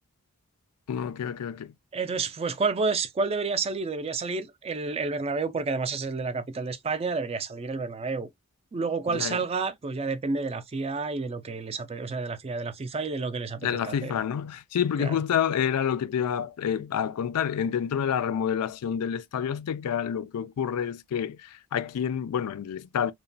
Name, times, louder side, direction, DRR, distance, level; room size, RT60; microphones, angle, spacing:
voice 1, 0.9-1.7 9.1-9.4 13.6-23.1, left 8 dB, 85° left, 0.4 m, -28 dB
voice 2, 1.9-8.3 8.7-14.1 15.0-15.2, right 4 dB, 25° right, 0.3 m, -30 dB
3.0 x 2.1 x 2.5 m
head